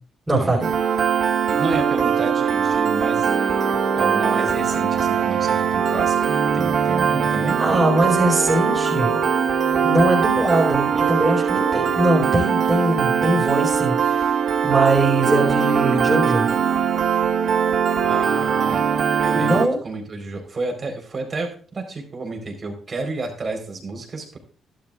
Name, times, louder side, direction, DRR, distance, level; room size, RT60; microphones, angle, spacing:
voice 1, 0.3-0.7 7.6-9.2 9.7-14.3 14.6-16.5 19.3-19.8, right 1 dB, 15° right, -7 dB, 5.2 m, -21 dB
Piano, 0.6-19.7, right 7 dB, 60° right, 1.7 m, -21 dB
voice 2, 1.5-3.3 4.0-6.3 6.5-7.6 18.0-18.9 19.2-19.6 19.8-24.4, right 3 dB, 40° right, 3 dB, 4.4 m, -30 dB
12.5 x 11.5 x 2.6 m, 0.39 s
cardioid pair, 90°, 0 cm